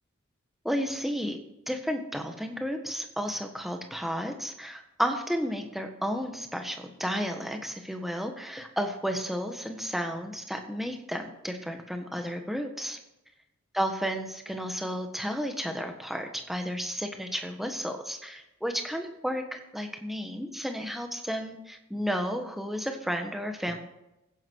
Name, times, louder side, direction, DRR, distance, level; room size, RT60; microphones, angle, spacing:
voice 1, 0.6-1.4 1.7-13.0 13.7-23.8, equal, ahead, 4 dB, 1.4 m, -32 dB
16.0 x 10.0 x 4.7 m, 0.91 s
head